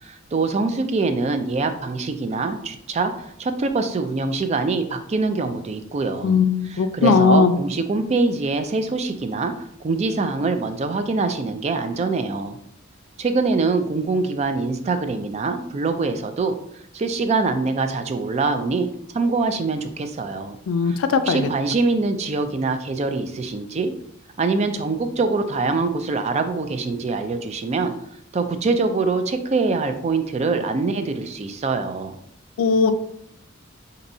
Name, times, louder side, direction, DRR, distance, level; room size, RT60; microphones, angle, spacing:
voice 1, 0.0-6.4 6.6-12.6 13.2-16.5 16.9-18.9 19.1-20.6 20.8-23.9 24.4-27.9 28.3-32.2, right 3 dB, 35° right, 8 dB, 0.3 m, -24 dB
voice 2, 6.2-7.5 20.7-21.4 32.6-32.9, left 4 dB, 90° left, 10 dB, 0.3 m, -18 dB
4.2 x 2.7 x 2.6 m, 0.73 s
head